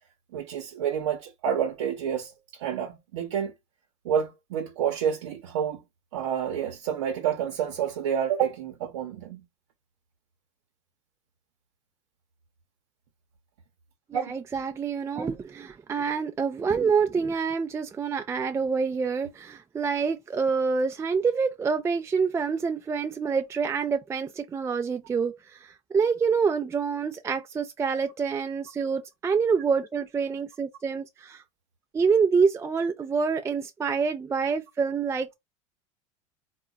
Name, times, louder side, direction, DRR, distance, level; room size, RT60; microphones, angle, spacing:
voice 1, 0.3-3.5 4.0-5.8 6.1-9.4 14.1-14.4, right 8 dB, 90° right, 0.7 m, -29 dB
voice 2, 14.1-31.4 31.9-35.3, right 5 dB, 20° right, 0.3 m, -27 dB
3.8 x 2.1 x 2.2 m
supercardioid pair, 105°, 15 cm